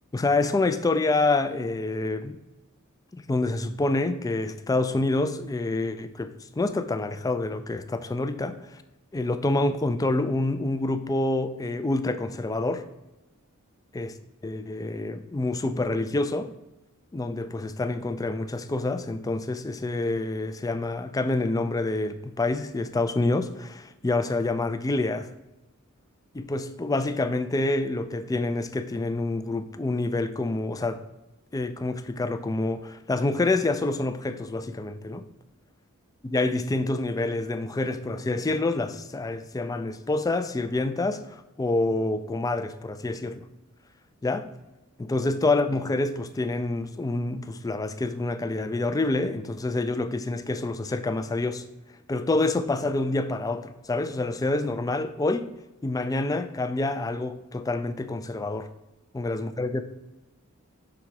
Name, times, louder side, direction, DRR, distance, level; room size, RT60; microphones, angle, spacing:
voice 1, 0.1-2.4 3.3-8.8 9.1-12.9 13.9-14.1 14.4-16.5 17.1-25.3 26.3-31.0 31.5-35.3 36.2-43.4 44.2-44.5 45.0-51.6 52.1-55.5 55.8-58.7 59.1-59.8, left 2 dB, 15° left, 0.3 m, -27 dB
5.9 x 3.9 x 4.7 m
head